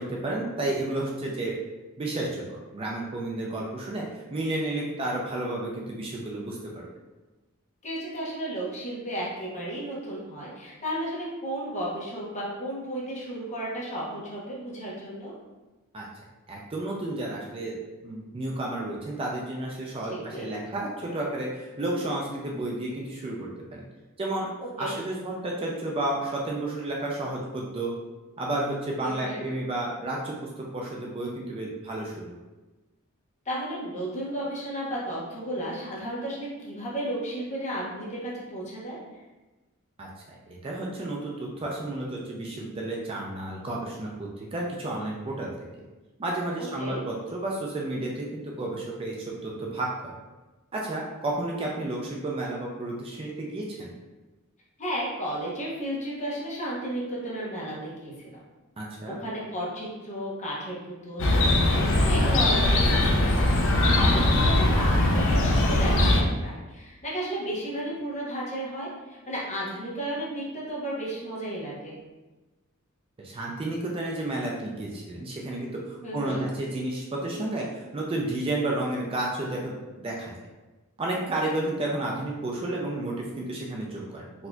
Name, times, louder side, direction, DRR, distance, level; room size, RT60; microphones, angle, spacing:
voice 1, 0.0-1.5 2.0-6.8 15.9-16.1 16.5-17.8 18.0-23.8 24.2-24.5 24.8-27.9 28.4-32.3 40.0-40.1 40.5-45.5 46.2-49.2 49.4-50.2 50.7-53.9 58.8-59.2 63.7-64.1 73.2-77.7 77.9-80.3 81.0-84.5, right 2 dB, 25° right, -2 dB, 0.4 m, -31 dB
voice 2, 7.8-15.3 20.1-20.5 24.8-25.0 29.0-29.4 33.4-39.0 46.8-47.0 54.8-58.4 59.0-60.8 61.0-72.0 76.0-76.4, right 1 dB, 30° left, -5 dB, 0.9 m, -33 dB
Chirp tweet, 61.2-66.2, left 1 dB, 60° left, 0.5 m, -21 dB
4.1 x 2.7 x 2.3 m, 1.2 s
head